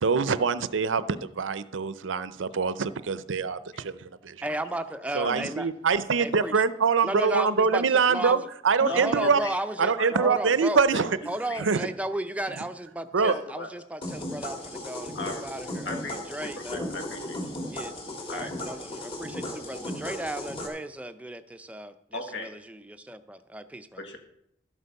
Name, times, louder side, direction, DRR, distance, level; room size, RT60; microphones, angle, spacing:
voice 1, 0.0-4.5 5.1-9.4 9.8-11.2 11.6-11.9 13.1-13.3, right 5 dB, 90° right, 15 dB, 0.6 m, -24 dB
voice 2, 4.4-5.7 6.2-6.5 7.0-8.4 8.9-10.8 11.3-16.9 17.7-17.9 18.3-24.0, right 1 dB, 5° right, 10 dB, 0.5 m, -35 dB
voice 3, 5.2-5.6 8.8-10.1 10.9-11.0 11.5-11.7 13.3-13.7 15.1-15.4 15.8-17.5 18.3-18.5 22.1-22.5 24.0-24.2, left 2 dB, 70° left, 5 dB, 1.6 m, -37 dB
sound 1, 14.0-20.7, left 1 dB, 30° left, 1.9 m, -36 dB
12.0 x 8.2 x 5.3 m, 0.76 s
head